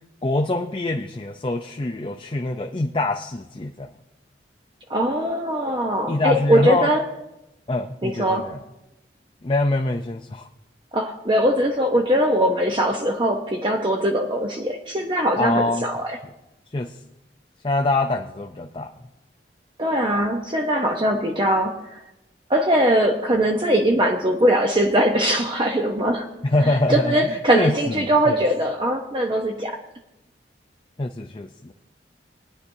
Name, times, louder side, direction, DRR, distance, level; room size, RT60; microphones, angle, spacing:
voice 1, 0.2-3.9 6.1-6.9 7.7-8.6 9.4-10.5 15.4-15.9 16.7-16.9 17.6-18.9 26.4-28.4 31.0-31.7, left 2 dB, 30° left, 3 dB, 0.5 m, -24 dB
voice 2, 4.9-7.0 8.0-8.5 10.9-16.1 19.8-21.8 22.5-26.3 26.6-29.8, right 1 dB, 25° right, 2 dB, 0.8 m, -21 dB
22.0 x 10.0 x 2.7 m, 0.91 s
head